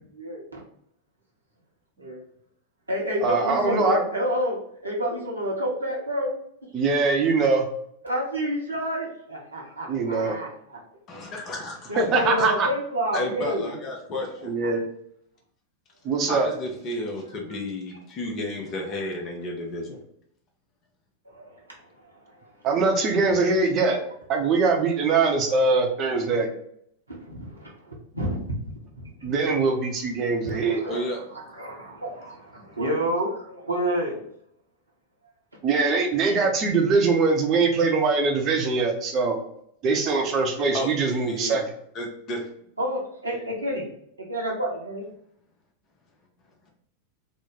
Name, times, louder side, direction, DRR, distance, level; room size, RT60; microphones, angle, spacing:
voice 1, 0.1-0.6 2.0-2.2 2.9-4.6 4.8-6.3 8.0-10.8 11.1-11.2 11.9-13.8 21.2-21.6 22.3-22.4 23.9-24.0 27.1-29.3 30.4-31.1 31.3-34.2 42.8-43.9 44.2-45.0, equal, 85° right, -4 dB, 0.9 m, -29 dB
voice 2, 3.2-4.0 6.7-7.7 9.9-10.4 12.0-12.7 14.4-14.9 16.0-16.5 22.6-24.0 24.3-26.5 29.2-30.8 35.6-39.4 39.8-41.6, right 4 dB, 35° right, 3 dB, 0.7 m, -22 dB
voice 3, 11.1-12.5 13.1-14.5 16.3-20.0 30.8-31.2 32.7-32.8 40.7-41.6 41.9-42.5, left 1 dB, 35° left, 0 dB, 0.7 m, -32 dB
3.0 x 2.1 x 3.8 m, 0.71 s
figure-of-eight pair, 90°, 0 cm